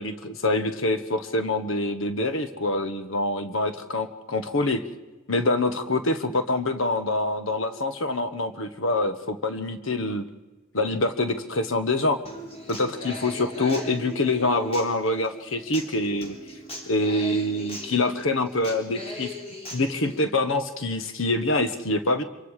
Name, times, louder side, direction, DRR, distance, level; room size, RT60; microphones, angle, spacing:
voice 1, 0.0-4.8 5.3-10.2 10.7-12.2 12.7-16.4 16.9-19.3 19.7-22.2, left 2 dB, 65° left, 10 dB, 1.2 m, -25 dB
Human voice / Acoustic guitar, 12.2-20.2, equal, 30° left, 3.4 m, -40 dB
25.5 x 23.5 x 4.9 m, 1.2 s
head